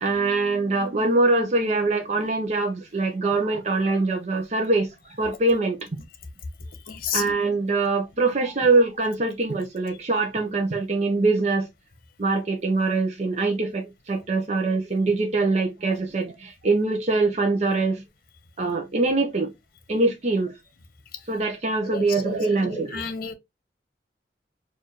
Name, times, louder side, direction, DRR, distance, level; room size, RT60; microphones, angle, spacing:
voice 1, 0.0-5.9 7.1-11.7 12.2-18.0 18.6-19.5 19.9-20.6 21.3-23.0, right 3 dB, 40° right, 0.6 m, -23 dB
voice 2, 6.9-7.2 21.1-21.2 21.9-22.4 22.7-23.3, left 7 dB, 55° left, 0.8 m, -31 dB
4.5 x 2.5 x 2.9 m
head